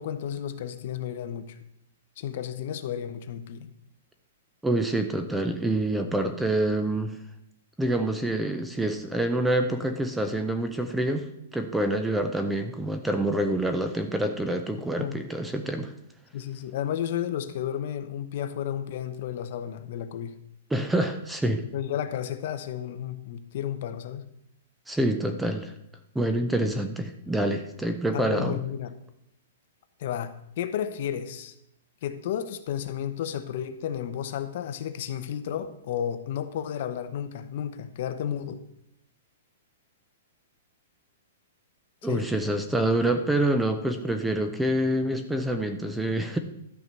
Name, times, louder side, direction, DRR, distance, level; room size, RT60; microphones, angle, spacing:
voice 1, 0.0-1.6 2.2-3.7 15.0-15.2 16.3-20.3 21.7-24.2 28.1-29.0 30.0-31.5 32.0-38.6 42.0-42.3, left 9 dB, 45° left, 9 dB, 0.9 m, -32 dB
voice 2, 4.6-7.2 7.8-15.9 20.7-21.6 24.9-25.7 26.1-28.6 42.0-46.4, right 1 dB, 5° right, 7 dB, 0.5 m, -26 dB
12.5 x 4.6 x 6.7 m, 0.77 s
hypercardioid pair, 170°, 0 cm